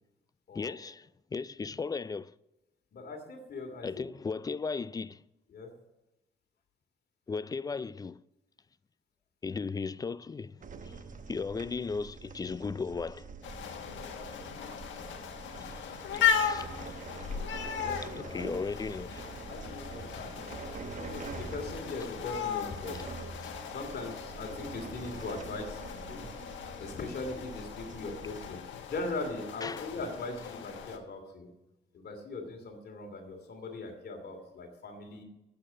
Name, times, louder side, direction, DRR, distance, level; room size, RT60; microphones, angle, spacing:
voice 1, 0.5-2.3 3.8-5.2 7.3-8.2 9.4-13.3 15.6-17.0 17.5-17.6 18.3-19.3 23.4-23.5 29.6-29.8, left 4 dB, 20° left, 0.3 m, -37 dB
voice 2, 2.9-4.0 4.3-4.4 5.5-5.7 13.7-14.6 17.8-18.5 19.5-23.1 23.7-26.3 26.8-31.5 31.9-35.2, left 3 dB, 55° left, 2.6 m, -40 dB
sound 1, 10.6-28.6, right 5 dB, 40° right, 0.9 m, -46 dB
sound 2, 13.4-31.0, left 8 dB, 70° left, 1.5 m, -37 dB
8.6 x 8.6 x 8.7 m
cardioid pair, 90°, 20 cm